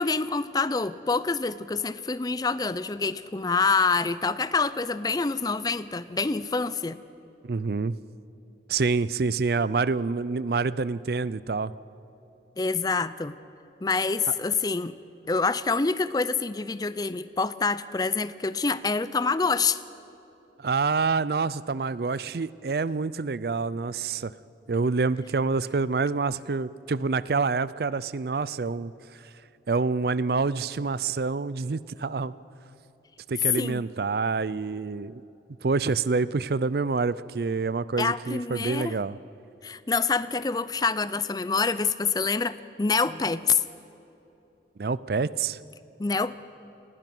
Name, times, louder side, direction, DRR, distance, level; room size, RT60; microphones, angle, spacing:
voice 1, 0.0-7.0 12.6-13.4 13.8-14.9 15.3-19.8 33.6-33.8 38.0-39.0 39.6-43.6 46.0-46.3, left 4 dB, 20° left, 16 dB, 0.4 m, -26 dB
voice 2, 7.4-7.9 8.7-11.7 20.6-24.3 24.7-28.9 29.7-32.3 33.3-35.2 35.6-39.2 44.8-45.6, right 4 dB, 55° right, 18 dB, 0.5 m, -27 dB
27.5 x 20.0 x 6.1 m, 3.0 s
head